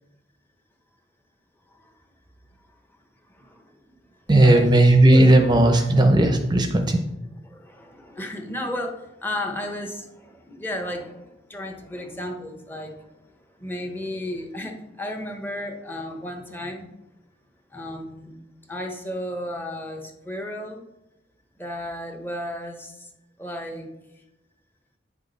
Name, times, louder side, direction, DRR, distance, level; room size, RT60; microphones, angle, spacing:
voice 1, 3.3-3.7 4.3-4.7 7.5-13.0 13.6-16.9 17.7-18.4 18.7-20.9 21.6-23.1 23.4-23.9, left 1 dB, 10° left, 4 dB, 0.9 m, -33 dB
voice 2, 4.3-7.0, right 1 dB, 25° right, 5 dB, 0.6 m, -16 dB
9.1 x 6.0 x 4.0 m, 0.92 s
head